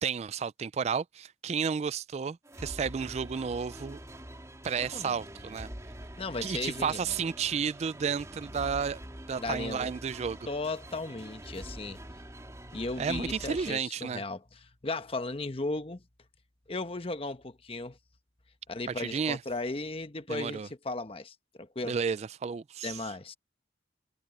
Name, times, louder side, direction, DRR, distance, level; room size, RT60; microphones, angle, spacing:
voice 1, 0.0-4.0 4.6-5.7 6.4-9.0 9.3-10.4 13.0-14.2 19.0-19.4 20.3-20.7 21.9-23.1, right 6 dB, 40° right, 0.3 m, -32 dB
sound 1, 2.5-13.7, right 1 dB, 20° right, 2.6 m, -45 dB
voice 2, 6.2-7.0 9.3-9.9 10.5-12.0 12.7-16.0 16.7-18.0 18.7-21.9 22.8-23.3, left 2 dB, 35° left, 1.1 m, -36 dB
head